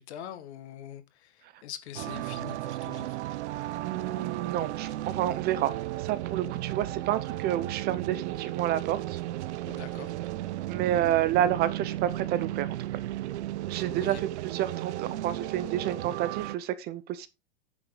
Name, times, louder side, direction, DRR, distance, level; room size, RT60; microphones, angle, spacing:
voice 1, 0.0-3.2 9.7-10.1 14.0-14.2, left 10 dB, 65° left, 1.9 m, -44 dB
sound 1, 2.0-16.6, right 14 dB, 70° right, 0.7 m, -34 dB
voice 2, 3.8-5.7 6.0-9.2 10.7-12.7 13.7-17.3, right 12 dB, 25° right, 0.6 m, -29 dB
9.7 x 7.0 x 3.9 m
hypercardioid pair, 140°, 35 cm